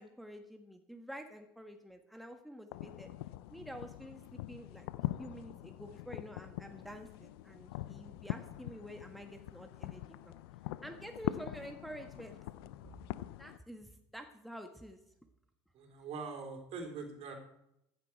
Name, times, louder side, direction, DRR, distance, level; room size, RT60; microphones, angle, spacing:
voice 1, 0.0-3.1 3.5-4.9 5.2-10.3 10.8-12.4 13.4-15.0, equal, ahead, 5 dB, 1.6 m, -49 dB
sound 1, 2.7-13.6, left 16 dB, 75° left, 0.6 m, -43 dB
voice 2, 15.7-17.3, right 4 dB, 50° right, 4 dB, 3.6 m, -43 dB
15.5 x 11.0 x 4.7 m, 0.80 s
hypercardioid pair, 65°, 13 cm